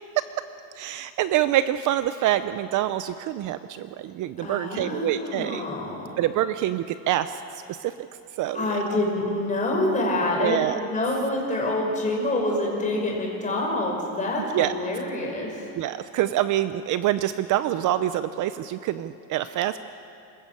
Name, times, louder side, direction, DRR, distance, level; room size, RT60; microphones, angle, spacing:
voice 1, 0.8-5.6 6.2-7.3 7.7-7.9 8.4-8.8 10.4-10.8 14.5-14.7 15.8-19.8, right 13 dB, 50° right, 12 dB, 0.6 m, -26 dB
voice 2, 4.4-6.1 8.5-10.6 10.9-15.6, left 2 dB, 20° left, -1 dB, 5.4 m, -26 dB
28.0 x 14.0 x 8.5 m, 2.8 s
cardioid pair, 150°, 41 cm